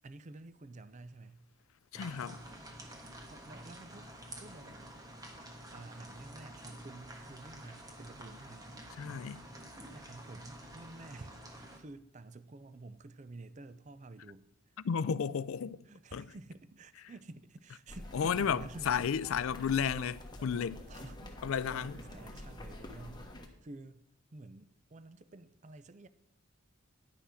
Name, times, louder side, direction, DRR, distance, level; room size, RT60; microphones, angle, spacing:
voice 1, 0.0-1.5 3.3-4.1 4.4-4.9 5.7-8.7 9.9-14.7 15.9-19.0 20.9-23.3 23.6-24.0 24.3-26.1, right 2 dB, 35° right, 0.5 m, -51 dB
voice 2, 1.9-2.4 9.0-9.4 14.8-15.8 16.1-16.3 18.1-20.8 21.4-22.0, left 7 dB, 75° left, 0.4 m, -33 dB
sound 1, 2.0-11.8, right 1 dB, 15° right, 1.3 m, -49 dB
sound 2, 17.9-23.5, left 1 dB, 20° left, 1.2 m, -47 dB
10.0 x 5.7 x 6.3 m
head